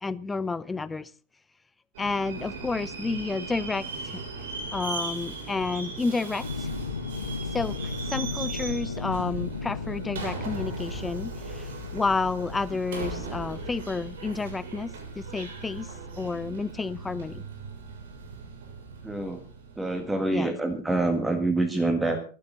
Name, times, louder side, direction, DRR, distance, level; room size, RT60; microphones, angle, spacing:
voice 1, 0.0-1.1 2.0-3.8 4.1-4.2 4.7-6.7 7.5-15.9 16.2-17.4 20.3-20.6, left 4 dB, 10° left, 0.7 m, -30 dB
Subway metro underground, 1.9-20.4, right 3 dB, 55° right, 6.6 m, -39 dB
sound 1, 6.4-14.6 16.0-16.1, left 4 dB, 75° left, 2.1 m, -35 dB
voice 2, 19.0-19.4 19.8-22.2, right 2 dB, 5° right, 1.7 m, -26 dB
22.5 x 12.5 x 4.0 m
figure-of-eight pair, 90°, 0 cm